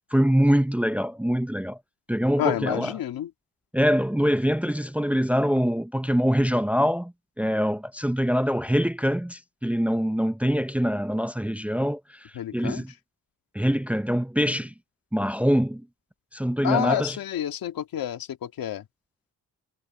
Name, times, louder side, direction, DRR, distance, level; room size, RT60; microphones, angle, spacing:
voice 1, 0.1-1.8 2.1-2.9 3.7-12.9 13.5-14.7 15.1-15.8 16.3-17.2, equal, 5° right, 0.7 m, -24 dB
voice 2, 2.4-3.3 12.3-12.8 16.6-18.8, left 11 dB, 80° left, 2.2 m, -29 dB
cardioid pair, 70°, 35 cm